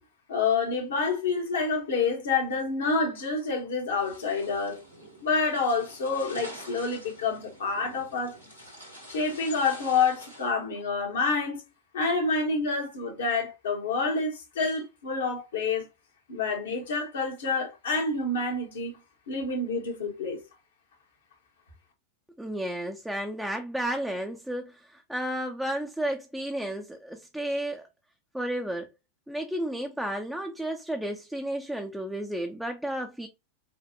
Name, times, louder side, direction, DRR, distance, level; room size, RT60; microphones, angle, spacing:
voice 1, 0.3-4.8 5.2-8.4 9.1-11.6 11.9-15.9 16.3-19.0 19.3-20.4, left 4 dB, 65° left, 1.4 m, -28 dB
sound 1, 4.0-10.5, equal, 90° left, 1.9 m, -47 dB
voice 2, 22.4-27.8 28.3-28.9 29.3-33.3, right 1 dB, ahead, 0.5 m, -32 dB
5.1 x 2.5 x 2.9 m
figure-of-eight pair, 90°, 0 cm